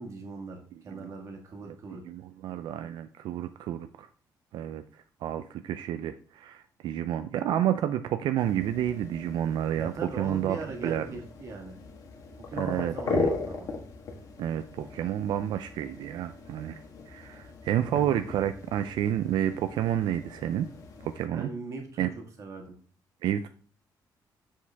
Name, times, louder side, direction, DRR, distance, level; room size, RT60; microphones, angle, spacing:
voice 1, 0.0-2.0 9.7-11.8 12.4-13.7 21.3-22.7, right 3 dB, 40° right, 3 dB, 1.6 m, -40 dB
voice 2, 2.1-4.1 4.5-4.8 5.2-10.6 10.8-11.1 12.6-13.3 14.4-16.8 17.1-20.7 21.0-21.5 22.0-22.1 23.2-23.5, right 11 dB, 80° right, 9 dB, 0.4 m, -30 dB
sound 1, 8.4-21.3, left 4 dB, 45° left, 1.4 m, -38 dB
7.3 x 6.4 x 3.5 m, 0.43 s
cardioid pair, 175°, 8 cm